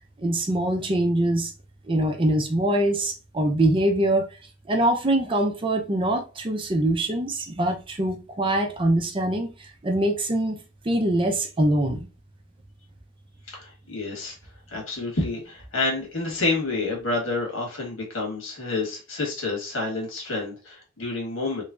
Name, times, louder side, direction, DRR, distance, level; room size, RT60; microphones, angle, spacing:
voice 1, 0.2-1.5 1.9-4.3 4.7-10.6 10.8-12.1, right 1 dB, 25° right, 0.5 m, -23 dB
voice 2, 13.5-14.4 14.7-21.6, left 3 dB, 80° left, 1.6 m, -29 dB
3.3 x 3.1 x 2.4 m
head